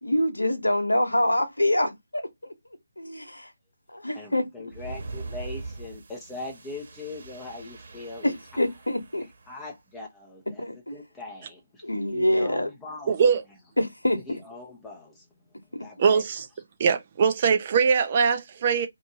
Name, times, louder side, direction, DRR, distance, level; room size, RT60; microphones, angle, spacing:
voice 1, 0.0-2.5 3.0-3.5 3.9-4.7 8.2-9.2 10.6-10.9 11.8-12.7 13.8-14.4 15.7-15.8, left 1 dB, 85° left, 1.0 m, -26 dB
voice 2, 4.1-8.4 9.5-13.2 14.1-15.3 15.8-16.4, left 2 dB, 5° left, 0.8 m, -41 dB
sound 1, 4.7-9.6, right 3 dB, 50° right, 1.4 m, -41 dB
voice 3, 13.1-13.4 16.0-16.4 16.8-18.9, right 6 dB, 30° right, 0.6 m, -21 dB
2.9 x 2.6 x 3.6 m
figure-of-eight pair, 155°, 0 cm